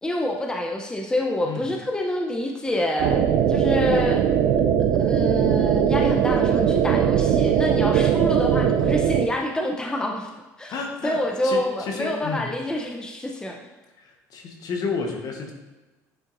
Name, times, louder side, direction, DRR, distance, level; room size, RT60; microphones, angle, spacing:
voice 1, 0.0-3.2 3.5-4.2 5.0-10.3 10.6-10.8 11.0-13.6, left 1 dB, 10° left, 1 dB, 0.7 m, -27 dB
sound 1, 3.0-9.3, right 8 dB, 65° right, 0.4 m, -20 dB
voice 2, 10.7-11.2 11.4-12.5 14.0-15.5, left 4 dB, 50° left, 2 dB, 1.2 m, -31 dB
9.0 x 4.3 x 2.6 m, 1.1 s
supercardioid pair, 85°, 8 cm